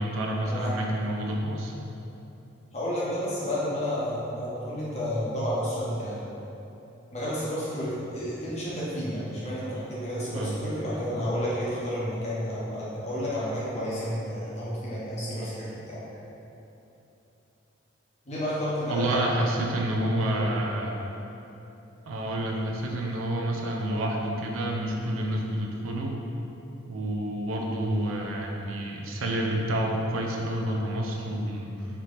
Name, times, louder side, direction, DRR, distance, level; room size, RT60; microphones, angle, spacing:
voice 1, 0.0-1.7 10.3-10.6 18.9-20.9 22.1-26.2 26.9-31.9, right 1 dB, 90° right, 0 dB, 0.4 m, -29 dB
voice 2, 2.7-6.2 7.1-16.0 18.3-19.3, equal, 35° left, -9 dB, 0.8 m, -31 dB
3.3 x 2.8 x 2.5 m, 3.0 s
head